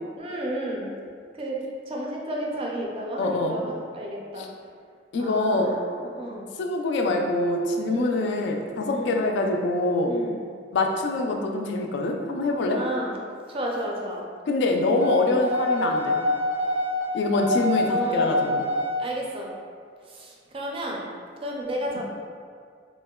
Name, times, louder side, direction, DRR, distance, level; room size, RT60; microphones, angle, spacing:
voice 1, 0.2-0.9 1.4-1.6 1.9-4.5 5.2-6.5 7.9-8.2 8.9-9.2 10.1-10.4 12.7-13.2 13.5-14.2 17.9-18.4 19.0-19.5 20.1-21.0 21.4-22.0, right 1 dB, 30° right, -2 dB, 0.4 m, -32 dB
voice 2, 3.2-3.6 4.4-4.5 5.1-5.7 6.6-10.1 10.7-12.8 14.5-16.2 17.1-18.6, left 2 dB, 70° left, 2 dB, 0.3 m, -24 dB
sound 1, 15.0-19.0, left 1 dB, 80° right, 0.6 m, -25 dB
3.6 x 2.1 x 2.2 m, 2.1 s
head